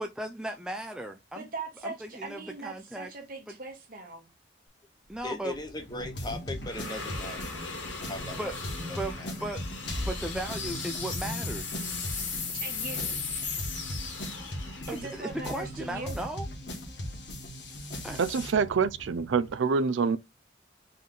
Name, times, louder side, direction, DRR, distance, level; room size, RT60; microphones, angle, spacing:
voice 1, 0.0-1.4 1.8-3.1 3.5-3.6 5.1-5.5 8.4-8.5 9.0-9.1 9.4-9.6 10.0-11.8 14.9-16.5 18.0-18.2, right 1 dB, 5° right, 0.3 m, -36 dB
voice 2, 1.3-4.3 12.2-13.2 14.9-16.2, right 3 dB, 50° right, 1.4 m, -40 dB
sound 1, 5.1-16.4, left 5 dB, 90° left, 1.9 m, -38 dB
voice 3, 5.2-8.4 8.9-9.3, left 2 dB, 20° left, 0.9 m, -39 dB
sound 2, 5.9-19.5, equal, 70° left, 1.6 m, -38 dB
voice 4, 18.2-20.2, right 5 dB, 90° right, 0.4 m, -26 dB
4.3 x 3.2 x 3.8 m
head